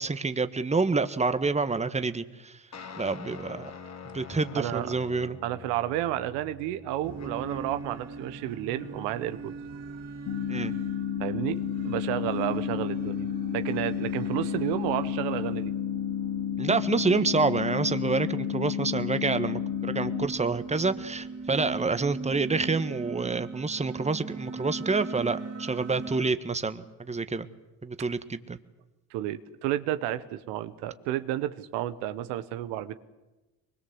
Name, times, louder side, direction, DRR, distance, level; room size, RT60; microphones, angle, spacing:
voice 1, 0.0-2.5 3.0-3.7 4.1-5.4 10.5-10.7 16.6-27.5 27.8-28.6, right 4 dB, 15° right, 11 dB, 1.4 m, -28 dB
sound 1, 2.7-7.9, left 5 dB, 40° left, 2.3 m, -45 dB
voice 2, 4.5-4.9 5.4-9.5 11.2-15.7 29.1-32.9, right 13 dB, 85° right, 11 dB, 1.3 m, -31 dB
sound 2, 7.0-26.3, right 4 dB, 35° right, 2.9 m, -40 dB
sound 3, 10.3-20.3, left 9 dB, 65° left, 2.5 m, -31 dB
23.5 x 21.0 x 8.1 m, 1.1 s
supercardioid pair, 75°, 41 cm